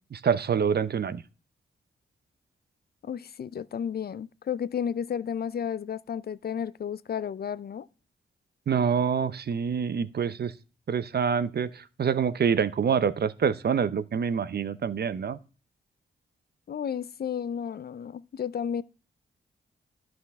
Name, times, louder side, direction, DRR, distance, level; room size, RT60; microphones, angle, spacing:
voice 1, 0.1-1.2 8.7-10.5 10.9-15.4, right 7 dB, 55° right, 0.7 m, -26 dB
voice 2, 3.0-7.9 16.7-18.8, left 8 dB, 55° left, 0.5 m, -32 dB
11.0 x 6.2 x 3.5 m
cardioid pair, 50°, 20 cm